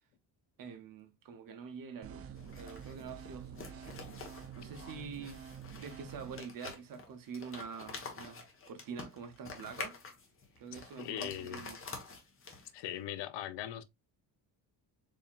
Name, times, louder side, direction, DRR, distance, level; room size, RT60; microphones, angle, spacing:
voice 1, 0.6-4.0 4.3-5.4 5.8-10.0 10.6-12.0, right 6 dB, 50° right, 0.8 m, -46 dB
sound 1, 2.0-6.4, right 7 dB, 35° right, 0.4 m, -48 dB
sound 2, 2.4-12.9, left 4 dB, 30° left, 1.2 m, -48 dB
voice 2, 11.0-11.6 12.7-13.8, left 12 dB, 75° left, 0.7 m, -40 dB
4.2 x 3.5 x 2.4 m
cardioid pair, 140°, 43 cm